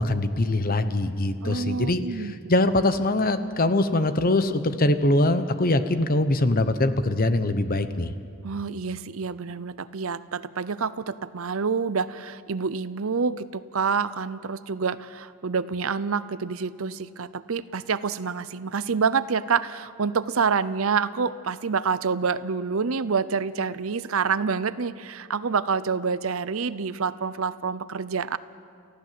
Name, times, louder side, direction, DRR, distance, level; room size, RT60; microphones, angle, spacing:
voice 1, 0.0-8.1, left 2 dB, 40° left, 10 dB, 1.0 m, -23 dB
voice 2, 1.4-2.3 8.4-28.4, right 5 dB, 65° right, 16 dB, 0.7 m, -27 dB
29.5 x 15.0 x 7.7 m, 2.3 s
head